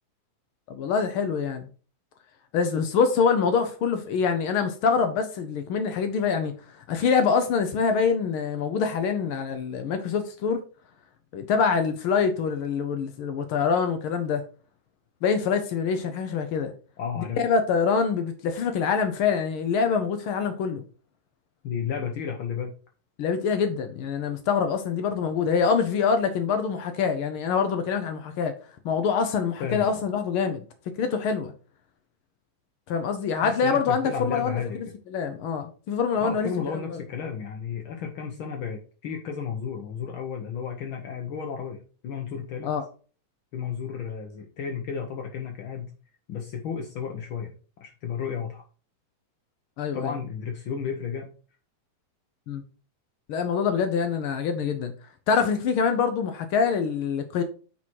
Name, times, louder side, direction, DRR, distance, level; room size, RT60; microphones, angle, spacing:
voice 1, 0.7-1.7 2.5-6.5 6.9-10.6 11.3-14.4 15.2-16.7 17.2-20.8 23.2-28.5 28.8-30.6 31.0-31.5 32.9-36.5 36.9-37.0 42.6-42.8 49.8-50.1 52.5-52.6 53.3-54.9 55.3-57.4, left 6 dB, 90° left, 1.1 m, -25 dB
voice 2, 17.0-17.4 21.6-22.7 29.6-30.0 33.4-34.9 36.2-42.7 43.5-45.9 46.3-47.5 47.8-48.6 49.9-51.3, left 7 dB, 70° left, 1.2 m, -33 dB
8.8 x 4.2 x 4.6 m
omnidirectional pair, 3.4 m